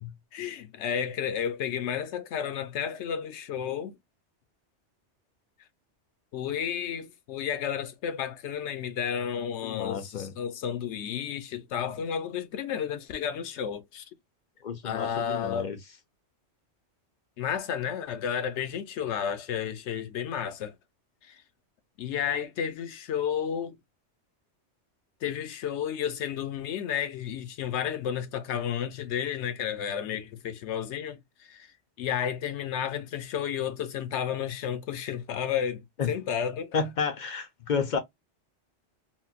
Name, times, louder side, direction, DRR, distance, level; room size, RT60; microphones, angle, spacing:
voice 1, 0.3-4.0 6.3-14.0 14.8-15.7 17.4-20.7 21.2-21.4 22.0-23.8 25.2-31.7 32.0-36.8, left 8 dB, 75° left, 0.9 m, -32 dB
voice 2, 9.6-10.3 14.6-15.8 36.0-36.1 36.7-38.0, left 6 dB, 55° left, 0.5 m, -31 dB
3.8 x 2.1 x 2.3 m
omnidirectional pair, 1.2 m